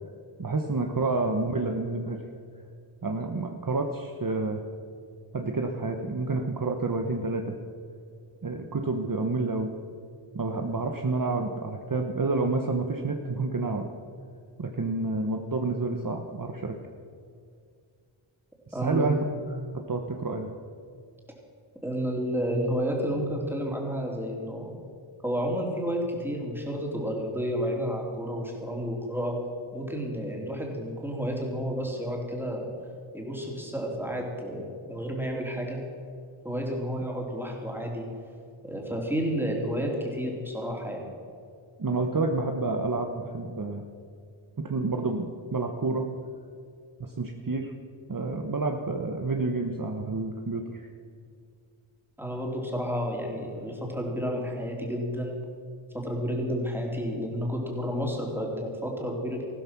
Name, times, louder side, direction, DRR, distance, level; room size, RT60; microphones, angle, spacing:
voice 1, 0.4-2.2 3.0-4.6 5.3-7.6 8.4-9.7 10.3-13.9 14.6-16.8 18.7-19.6 19.9-20.5 41.8-43.8 44.6-46.0 47.0-47.7 48.1-50.9, right 3 dB, 40° right, 4 dB, 1.0 m, -29 dB
voice 2, 18.7-19.2 21.8-24.8 25.2-29.4 29.7-32.7 33.1-35.8 36.4-38.1 38.6-41.0 52.2-55.4 55.9-59.4, equal, 5° right, -1 dB, 3.5 m, -31 dB
14.5 x 13.0 x 6.0 m, 2.3 s
wide cardioid pair, 70°, 49 cm